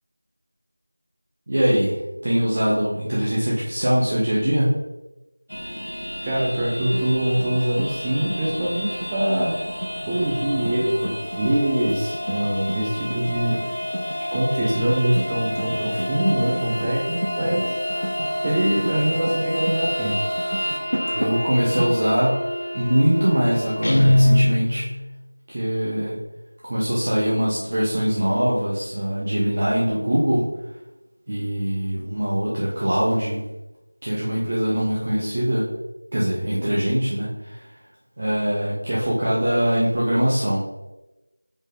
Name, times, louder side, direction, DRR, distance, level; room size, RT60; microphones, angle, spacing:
voice 1, 1.5-4.7 21.1-22.4 22.7-24.8 25.5-26.2 26.7-30.5 31.3-33.4 34.0-35.7 36.1-37.6 38.2-40.6, equal, 35° right, -6 dB, 1.1 m, -22 dB
sound 1, 5.5-24.4, equal, 85° left, 1.7 m, -30 dB
voice 2, 6.2-9.5 10.1-13.6 14.3-17.8 18.4-20.2, right 1 dB, 10° right, -5 dB, 0.7 m, -23 dB
sound 2, 6.8-21.9, equal, 65° right, 1.1 m, -34 dB
Guitar, 23.8-25.1, left 1 dB, 35° left, 0.8 m, -18 dB
5.5 x 5.4 x 3.7 m, 1.0 s
figure-of-eight pair, 175°, 0 cm